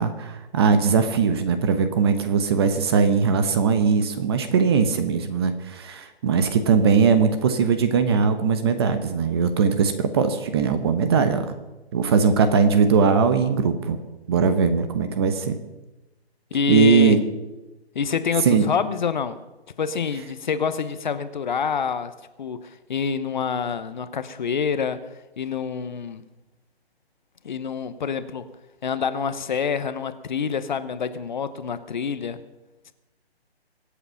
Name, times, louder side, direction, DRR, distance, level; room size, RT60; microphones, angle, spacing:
voice 1, 0.0-11.6 11.9-14.0 14.3-15.6 16.7-17.2 18.4-18.7, right 5 dB, 25° right, 10 dB, 1.0 m, -20 dB
voice 2, 16.5-17.2 17.9-19.4 19.8-22.1 22.4-25.0 25.4-26.2 27.4-28.5 28.8-32.4, left 6 dB, 45° left, 12 dB, 1.0 m, -26 dB
24.5 x 8.2 x 5.8 m, 1.1 s
hypercardioid pair, 155°, 32 cm